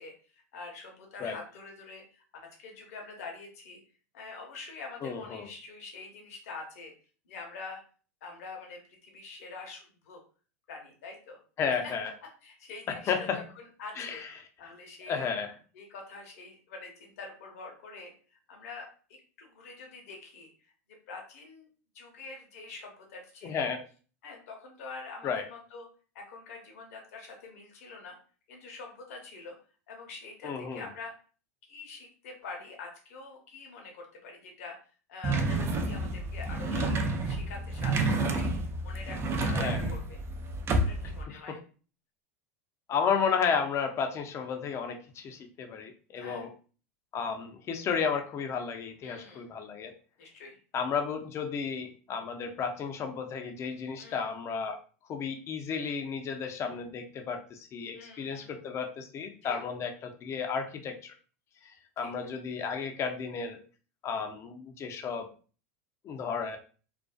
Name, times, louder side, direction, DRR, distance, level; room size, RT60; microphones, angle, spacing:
voice 1, 0.0-3.8 4.1-6.9 7.3-7.8 8.2-10.2 10.7-11.4 11.8-11.9 12.4-14.2 14.6-15.3 15.7-20.7 21.1-21.7 21.9-23.7 24.2-25.9 26.1-28.2 28.5-29.6 29.9-31.1 31.6-34.8 35.1-37.0 37.2-40.2 40.7-41.6 46.1-46.4 49.0-49.5 50.2-50.6 54.0-54.3 57.9-58.6 59.4-59.6 62.0-62.1, left 4 dB, 70° left, 1 dB, 0.8 m, -45 dB
voice 2, 5.0-5.5 11.6-12.1 13.1-13.5 14.0-14.5 15.1-15.5 23.4-23.8 25.2-25.5 30.4-30.8 39.5-39.9 41.3-41.4 42.9-46.5 47.1-49.9 50.7-54.8 55.1-61.1 61.6-63.6 64.0-65.3 66.0-66.6, left 6 dB, 35° left, 6 dB, 0.5 m, -33 dB
sound 1, 35.2-41.2, right 2 dB, 30° right, 0.4 m, -30 dB
2.5 x 2.2 x 2.2 m, 0.39 s
hypercardioid pair, 95°, 8 cm